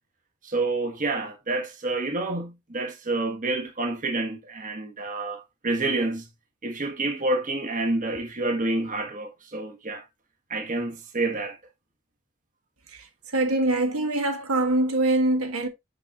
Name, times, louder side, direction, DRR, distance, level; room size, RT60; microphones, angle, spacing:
voice 1, 0.4-6.3 6.6-10.0 10.5-11.6, right 2 dB, 35° right, 1.2 m, -28 dB
voice 2, 13.3-15.7, right 2 dB, 75° right, 1.5 m, -23 dB
6.8 x 6.1 x 2.5 m
head